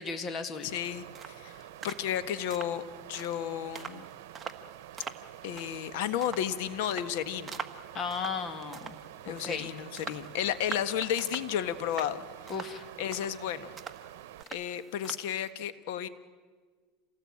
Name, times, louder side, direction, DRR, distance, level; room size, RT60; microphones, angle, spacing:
voice 1, 0.0-0.7 7.9-9.0 9.3-9.7 12.5-12.9, left 5 dB, 30° left, 9 dB, 2.2 m, -35 dB
voice 2, 0.6-2.8 3.1-4.0 5.4-7.6 9.2-12.2 13.0-13.7 14.5-16.1, left 10 dB, 70° left, 13 dB, 1.5 m, -33 dB
sound 1, 0.6-15.5, right 5 dB, 20° right, 1.4 m, -46 dB
Water, 0.7-14.4, right 13 dB, 90° right, 0.9 m, -48 dB
27.5 x 18.5 x 8.7 m, 1.5 s
supercardioid pair, 140°, 0 cm